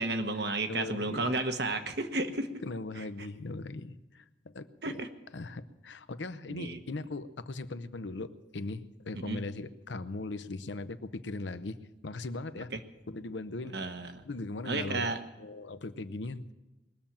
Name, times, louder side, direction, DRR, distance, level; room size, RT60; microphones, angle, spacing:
voice 1, 0.0-2.6 3.0-3.1 4.8-5.1 6.5-6.8 9.1-9.4 13.7-14.2 14.6-15.2, right 2 dB, 65° right, 7 dB, 1.2 m, -32 dB
voice 2, 0.7-1.2 2.6-5.0 5.3-11.8 12.0-12.7 13.1-13.8 14.2-16.5, left 2 dB, 80° left, 12 dB, 0.7 m, -39 dB
21.0 x 7.2 x 8.9 m, 1.1 s
head